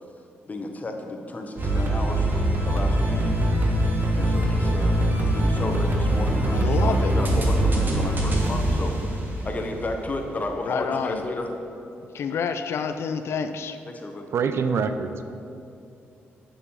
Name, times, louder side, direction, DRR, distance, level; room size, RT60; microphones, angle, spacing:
voice 1, 0.5-2.3 2.6-3.5 4.1-9.1 9.4-11.5 13.9-14.3, left 2 dB, 35° left, 3 dB, 1.1 m, -33 dB
sound 1, 1.6-10.0, right 1 dB, 45° right, 1.7 m, -23 dB
voice 2, 6.5-7.1 10.7-11.2 12.1-13.8, left 6 dB, 70° left, 8 dB, 0.4 m, -28 dB
voice 3, 14.3-15.2, right 5 dB, 65° right, 10 dB, 0.5 m, -25 dB
6.9 x 6.9 x 5.7 m, 2.6 s
cardioid pair, 70°, 5 cm